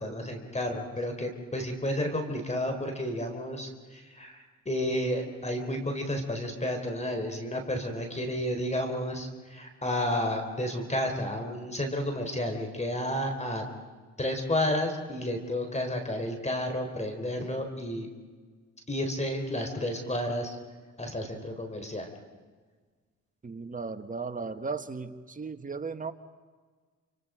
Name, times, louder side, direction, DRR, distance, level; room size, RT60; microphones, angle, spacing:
voice 1, 0.0-13.6 14.2-18.1 18.9-20.5 21.0-22.1, left 1 dB, 20° left, 5 dB, 4.1 m, -31 dB
voice 2, 23.4-26.1, right 4 dB, 25° right, 8 dB, 1.7 m, -36 dB
28.5 x 27.0 x 5.1 m, 1.5 s
cardioid pair, 90°, 30 cm